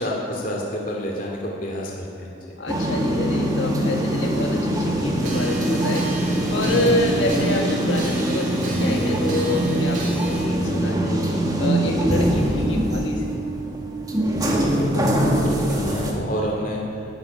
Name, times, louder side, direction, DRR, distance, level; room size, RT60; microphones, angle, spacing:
voice 1, 0.0-2.5 14.2-16.8, equal, 45° left, -2 dB, 2.4 m, -29 dB
voice 2, 2.6-11.2 11.6-13.4, left 2 dB, 85° left, 1 dB, 1.7 m, -27 dB
sound 1, 2.7-16.1, right 1 dB, 20° right, 2.0 m, -23 dB
sound 2, 5.2-10.5, right 2 dB, 45° right, 3.0 m, -37 dB
12.5 x 11.0 x 9.7 m, 2.9 s
head